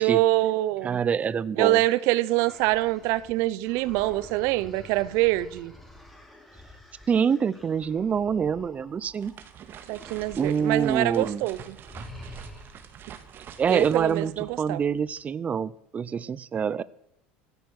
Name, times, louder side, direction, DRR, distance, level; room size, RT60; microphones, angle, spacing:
voice 1, 0.0-1.0 1.6-5.7 9.9-11.8 13.7-14.8, right 17 dB, 70° right, 0.8 m, -25 dB
voice 2, 0.8-1.8 7.1-9.3 10.3-11.4 13.6-16.8, right 7 dB, 30° right, 0.6 m, -26 dB
sound 1, 2.2-9.4 9.8-11.1 11.3-11.5 11.9-13.0, left 1 dB, 5° left, 4.2 m, -49 dB
sound 2, 8.9-15.2, right 8 dB, 45° right, 2.1 m, -46 dB
16.5 x 12.5 x 6.5 m
supercardioid pair, 100°, 5 cm